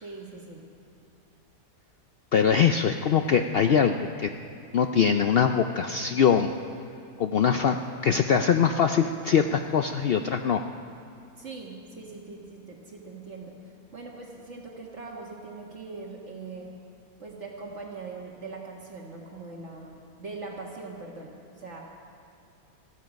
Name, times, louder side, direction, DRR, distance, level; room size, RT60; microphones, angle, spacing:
voice 1, 0.0-0.7 11.4-13.6 13.9-16.7 17.2-21.8, right 3 dB, 50° right, -1 dB, 1.8 m, -41 dB
voice 2, 2.3-4.3 4.7-6.5 7.2-7.8 8.0-10.6, left 7 dB, 75° left, 7 dB, 0.5 m, -22 dB
19.5 x 14.0 x 5.2 m, 2.6 s
omnidirectional pair, 1.6 m